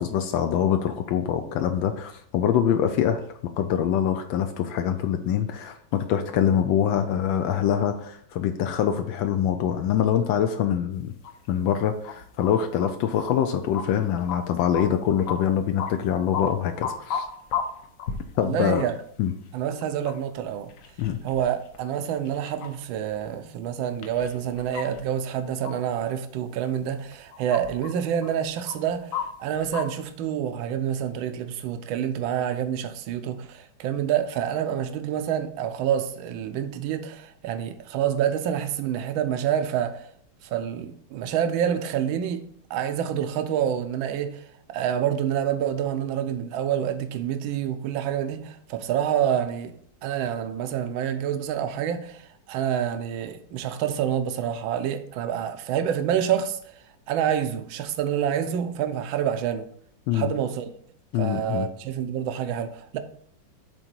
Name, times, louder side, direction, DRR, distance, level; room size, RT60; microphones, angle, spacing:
voice 1, 0.0-3.2 3.6-11.1 11.5-17.3 18.4-18.9 19.2-19.3 21.0-21.2 60.1-60.3 61.1-61.7, left 9 dB, 75° left, 1.3 m, -24 dB
sound 1, 11.2-11.8 12.0-12.5 12.8-13.3 13.7-14.4 14.7-14.8 15.2-15.4 15.8-15.9 16.3-16.5 16.7-18.5 18.8-18.9 19.8-20.4 20.7-21.8 22.1-22.7 23.1-23.2 23.9-25.0 25.6-25.7 26.6-26.7 27.1-27.9 28.2-29.8, left 7 dB, 60° left, 0.9 m, -33 dB
voice 2, 18.4-18.9 19.5-20.7 21.2-40.1 40.4-49.7 50.0-56.6 57.1-59.7 60.1-60.7 61.2-63.0, right 9 dB, 80° right, 1.4 m, -27 dB
7.9 x 3.7 x 4.4 m
omnidirectional pair, 2.2 m